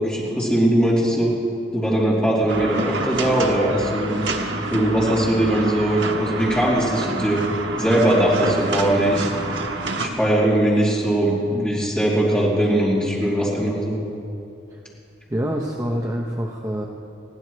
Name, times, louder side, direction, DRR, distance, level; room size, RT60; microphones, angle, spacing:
voice 1, 0.0-1.3 1.7-4.2 4.7-7.4 7.8-9.3 10.0-13.9, right 1 dB, 5° left, -7 dB, 3.0 m, -20 dB
sound 1, 2.5-10.1, right 3 dB, 80° right, 1.1 m, -28 dB
voice 2, 15.3-16.9, equal, 15° right, -1 dB, 0.8 m, -26 dB
21.0 x 15.0 x 3.1 m, 2.6 s
head